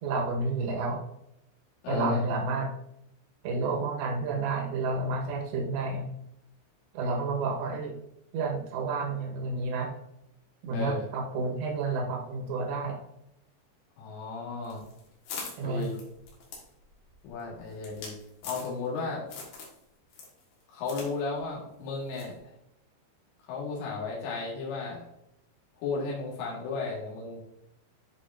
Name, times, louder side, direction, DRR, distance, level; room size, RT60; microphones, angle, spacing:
voice 1, 0.0-1.0 1.9-2.7 3.4-6.1 6.9-8.0 8.3-9.9 10.6-13.0 15.6-15.8, right 3 dB, 70° right, 0 dB, 3.4 m, -30 dB
voice 2, 1.8-2.2 10.7-11.1 14.0-14.8 15.6-16.0 17.2-18.1 18.4-19.2 20.7-22.3 23.5-25.0 25.8-27.4, left 4 dB, 80° left, -4 dB, 4.3 m, -34 dB
sound 1, 14.6-19.0 19.3-19.8 20.1-21.1 21.4-21.5 22.1-22.4, left 4 dB, 60° left, 2.7 m, -42 dB
11.0 x 4.7 x 2.6 m, 0.82 s
omnidirectional pair, 5.5 m